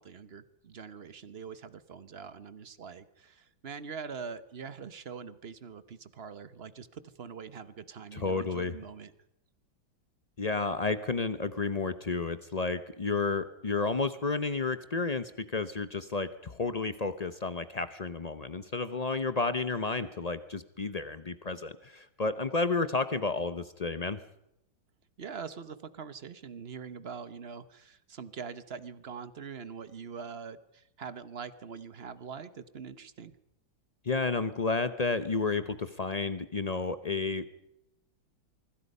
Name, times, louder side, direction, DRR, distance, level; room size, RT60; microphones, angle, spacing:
voice 1, 0.0-9.1 25.2-33.3, right 6 dB, 40° right, 14 dB, 1.0 m, -43 dB
voice 2, 8.1-8.7 10.4-24.2 34.0-37.6, left 3 dB, 70° left, 12 dB, 0.3 m, -31 dB
24.5 x 24.5 x 5.5 m, 0.83 s
omnidirectional pair, 2.1 m